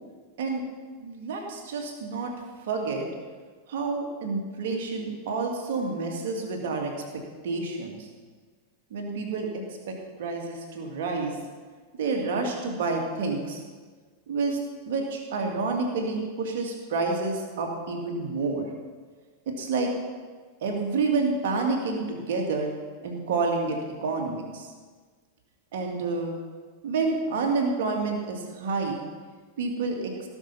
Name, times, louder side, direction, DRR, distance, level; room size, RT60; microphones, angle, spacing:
voice 1, 1.0-2.3 2.7-3.1 3.7-8.1 8.9-11.4 12.0-13.6 14.3-14.6 14.9-18.7 19.5-19.9 20.6-22.7 23.0-24.7 25.7-26.4 26.8-29.0 29.6-30.1, right 3 dB, 55° right, 1 dB, 2.5 m, -29 dB
17.5 x 6.4 x 5.6 m, 1.5 s
figure-of-eight pair, 90°, 0 cm